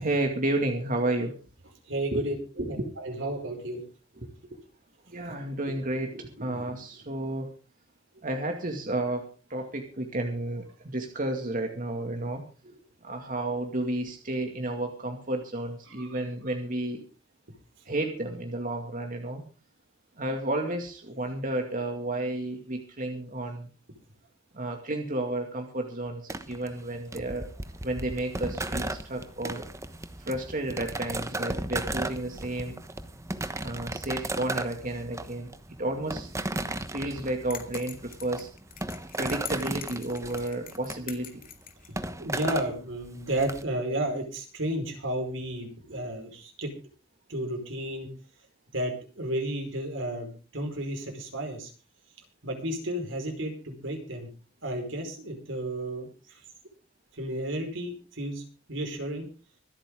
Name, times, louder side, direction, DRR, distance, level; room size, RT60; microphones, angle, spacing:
voice 1, 0.0-1.3 2.1-2.2 2.6-2.9 4.2-4.3 5.1-7.5 8.2-17.0 17.9-19.4 20.2-23.7 24.5-27.5 27.8-29.6 30.2-32.8 33.6-35.5 35.8-36.3 36.9-38.5 39.2-41.4 45.9-46.0, right 1 dB, 45° right, 3 dB, 2.3 m, -32 dB
voice 2, 1.9-3.8 6.5-6.6 15.9-16.2 41.9-46.7 47.3-48.1 48.7-51.7 52.4-54.3 54.6-56.4 57.1-58.4 58.7-59.3, right 1 dB, 80° right, 4 dB, 5.0 m, -33 dB
sound 1, 26.3-43.6, right 2 dB, 15° right, 1.1 m, -35 dB
sound 2, 37.5-41.9, left 10 dB, 50° left, 2.2 m, -43 dB
25.5 x 8.8 x 3.8 m, 0.36 s
head